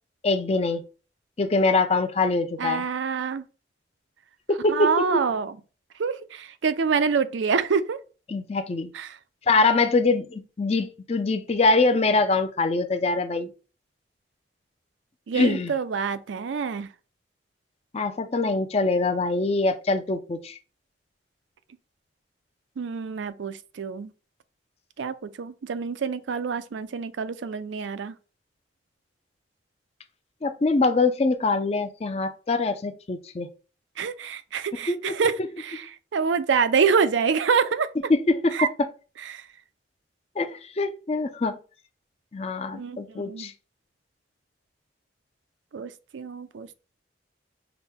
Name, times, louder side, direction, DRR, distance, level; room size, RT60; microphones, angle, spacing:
voice 1, 0.2-0.8 1.4-2.9 4.5-5.2 8.3-8.9 9.5-13.5 15.3-15.7 17.9-20.6 30.4-33.5 34.9-35.2 38.1-38.9 40.4-41.6 42.3-43.5, left 3 dB, 35° left, 0.4 m, -24 dB
voice 2, 2.6-3.4 4.7-5.5 6.0-8.0 8.9-9.1 15.3-16.9 22.8-24.1 25.0-28.2 34.0-35.9 36.1-37.9 38.5-38.7 39.3-39.5 42.7-43.5 45.7-46.7, right 5 dB, 80° right, 0.4 m, -26 dB
5.8 x 2.2 x 3.5 m
head